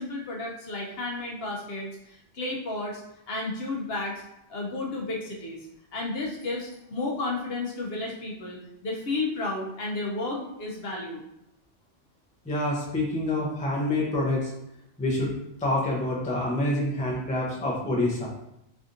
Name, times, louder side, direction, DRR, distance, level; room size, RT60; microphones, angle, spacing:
voice 1, 0.0-3.0 3.3-4.2 4.5-5.7 5.9-11.2, left 2 dB, 65° left, -2 dB, 0.8 m, -32 dB
voice 2, 12.4-14.5 15.0-15.3 15.6-18.3, left 1 dB, 10° left, -4 dB, 0.4 m, -27 dB
3.4 x 2.6 x 2.5 m, 0.82 s
omnidirectional pair, 1.3 m